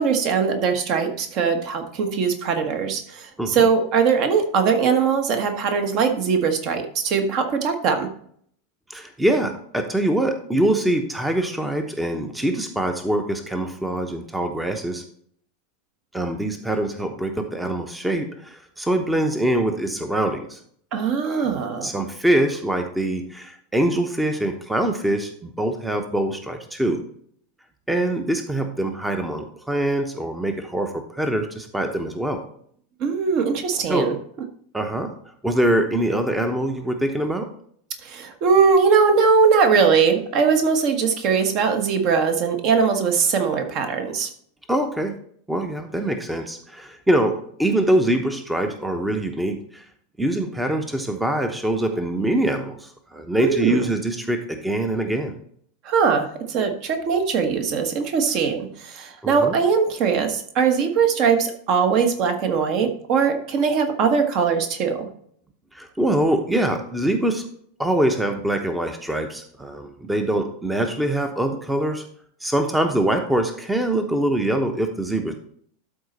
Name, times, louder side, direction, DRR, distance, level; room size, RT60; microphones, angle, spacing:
voice 1, 0.0-8.1 20.9-21.9 33.0-34.1 38.0-44.3 53.4-53.9 55.8-65.1, right 5 dB, 40° right, 6 dB, 1.3 m, -21 dB
voice 2, 8.9-15.0 16.1-20.6 21.2-27.0 27.9-32.4 33.9-34.1 34.7-35.1 35.4-37.5 44.7-45.1 45.5-49.8 50.2-55.3 59.2-59.6 65.7-67.5 67.8-72.0 72.4-75.4, right 1 dB, 5° right, 6 dB, 0.9 m, -24 dB
12.5 x 4.2 x 4.2 m, 0.62 s
figure-of-eight pair, 85°, 0 cm